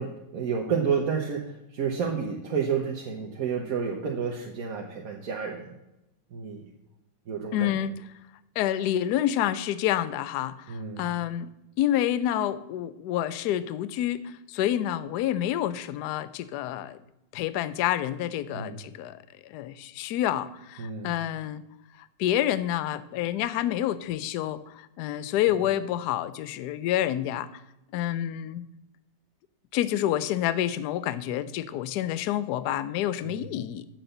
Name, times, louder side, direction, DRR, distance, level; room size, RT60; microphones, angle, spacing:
voice 1, 0.0-5.7 6.3-6.7 7.3-7.7 10.7-11.1 18.5-18.8 20.8-21.2 33.2-33.4, right 6 dB, 55° right, 1 dB, 1.2 m, -30 dB
voice 2, 7.5-7.9 8.6-11.5 11.8-17.0 17.3-21.6 22.2-27.5 27.9-28.7 29.7-33.8, left 12 dB, 70° left, 15 dB, 1.0 m, -28 dB
7.9 x 5.9 x 6.6 m, 0.90 s
omnidirectional pair, 2.1 m